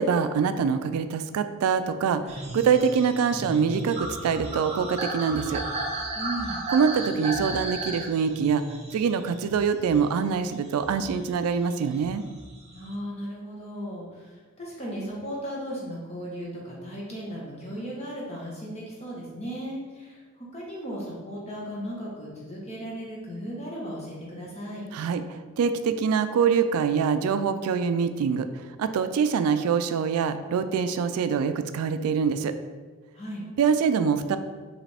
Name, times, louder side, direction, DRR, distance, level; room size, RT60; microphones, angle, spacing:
voice 1, 0.0-5.6 6.7-8.6 8.9-12.2 24.9-28.5 28.8-32.5 33.6-34.4, right 6 dB, 85° right, 10 dB, 0.3 m, -24 dB
sound 1, 2.3-10.3 10.7-12.9, right 2 dB, 30° right, 0.6 m, -34 dB
voice 2, 6.1-6.6 12.7-24.8 33.1-33.4, equal, 30° left, -4 dB, 1.0 m, -36 dB
4.9 x 3.2 x 3.4 m, 1.4 s
head